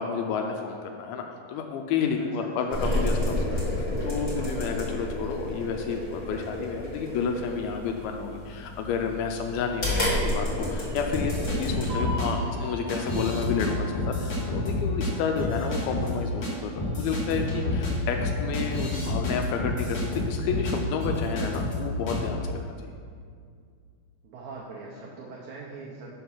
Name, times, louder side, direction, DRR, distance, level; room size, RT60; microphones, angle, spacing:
voice 1, 0.0-22.6, left 6 dB, 85° left, 3 dB, 2.4 m, -31 dB
voice 2, 2.2-2.5 12.2-12.7 24.2-26.1, right 4 dB, 75° right, -4 dB, 1.8 m, -42 dB
sound 1, 2.7-12.0, left 1 dB, 45° left, 0.9 m, -30 dB
sound 2, 10.8-18.5 18.9-19.0 19.4-20.1, equal, 60° right, 1.9 m, -44 dB
sound 3, 11.1-12.3 12.9-13.7 13.9-15.1 15.4-16.1 16.4-16.5 16.8-20.7 21.0-21.8 22.1-22.3, left 2 dB, 65° left, 1.0 m, -29 dB
5.9 x 5.9 x 5.5 m, 2.1 s
omnidirectional pair, 4.3 m